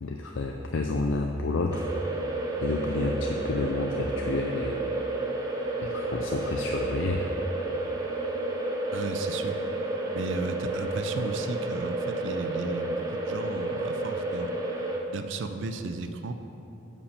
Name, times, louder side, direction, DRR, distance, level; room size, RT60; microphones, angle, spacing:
voice 1, 0.0-1.9 2.6-4.9 5.8-7.3, left 3 dB, 70° left, 2 dB, 0.5 m, -30 dB
sound 1, 1.7-15.0, right 2 dB, 20° right, 0.8 m, -31 dB
voice 2, 8.9-9.6 10.1-14.5 15.1-16.3, right 3 dB, 65° right, 8 dB, 0.5 m, -34 dB
8.5 x 5.3 x 6.8 m, 3.0 s
head